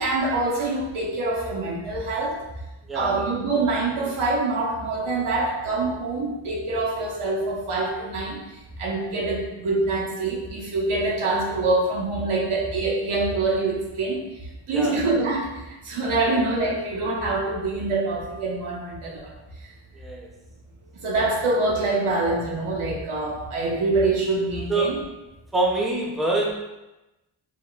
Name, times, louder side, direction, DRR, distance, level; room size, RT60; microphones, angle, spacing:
voice 1, 0.0-2.3 2.9-8.4 8.8-14.2 14.7-15.5 15.8-19.2 21.0-25.0, right 2 dB, 90° right, -3 dB, 1.2 m, -25 dB
voice 2, 19.9-20.3 24.7-24.9 25.5-26.6, right 2 dB, ahead, -2 dB, 0.5 m, -25 dB
6.2 x 2.9 x 2.3 m, 0.99 s
wide cardioid pair, 155°, 48 cm